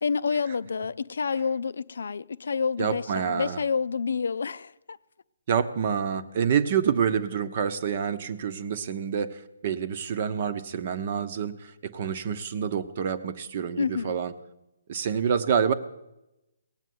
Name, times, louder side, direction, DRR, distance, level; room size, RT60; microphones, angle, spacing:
voice 1, 0.0-5.0 13.8-14.2, left 5 dB, 70° left, 0.5 m, -28 dB
voice 2, 2.8-3.6 5.5-14.3 14.9-15.7, right 7 dB, 40° right, 0.9 m, -27 dB
18.0 x 7.4 x 9.4 m
hypercardioid pair, 160°, 0 cm